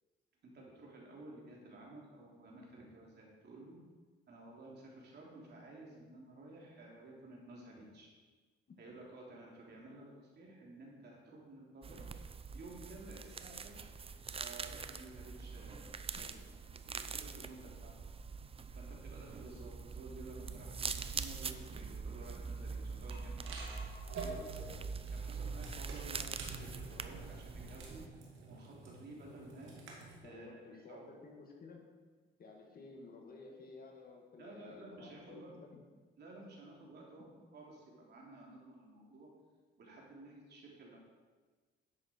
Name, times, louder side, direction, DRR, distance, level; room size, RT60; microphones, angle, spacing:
voice 1, 0.5-3.8 4.3-8.1 8.8-12.1 12.5-13.8 14.4-16.3 16.8-17.9 18.7-23.6 24.2-24.8 25.1-28.0 28.5-29.7 30.2-31.1 34.4-35.6 36.2-39.3 39.8-41.0, right 2 dB, 55° right, -3 dB, 3.3 m, -53 dB
sound 1, 11.8-28.1, right 5 dB, 30° right, 0.6 m, -44 dB
sound 2, 23.1-30.2, right 3 dB, 80° right, 2.2 m, -49 dB
voice 2, 30.2-31.8 32.4-35.7, left 3 dB, 50° left, 1 dB, 2.2 m, -53 dB
11.0 x 7.8 x 4.6 m, 1.4 s
cardioid pair, 90°, 20 cm